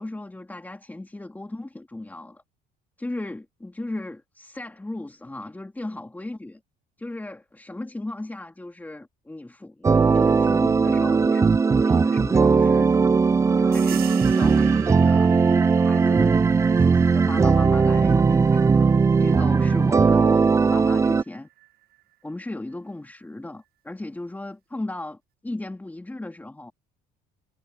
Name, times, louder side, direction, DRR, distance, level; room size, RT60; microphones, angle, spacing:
voice 1, 0.0-2.4 3.0-6.6 7.0-12.9 13.5-15.3 15.8-16.4 16.8-21.5 22.2-26.7, left 2 dB, 10° left, 3.2 m, -36 dB
sound 1, 9.8-21.2, right 5 dB, 15° right, 0.3 m, -18 dB
sound 2, 13.7-22.0, right 14 dB, 65° right, 1.7 m, -42 dB
cardioid pair, 110°, 17 cm